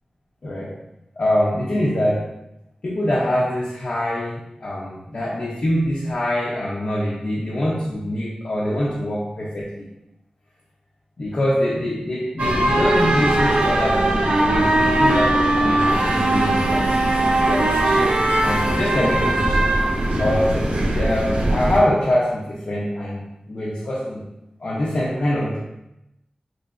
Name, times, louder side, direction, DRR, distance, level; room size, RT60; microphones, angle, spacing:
voice 1, 0.4-0.7 1.2-2.3 2.8-9.9 11.2-16.9 17.5-19.7 20.2-24.3 24.6-25.6, left 1 dB, 60° left, -5 dB, 0.5 m, -24 dB
sound 1, 12.4-21.8, right 1 dB, 80° right, 0.5 m, -19 dB
3.8 x 3.0 x 2.3 m, 0.90 s
wide cardioid pair, 80°, 2 cm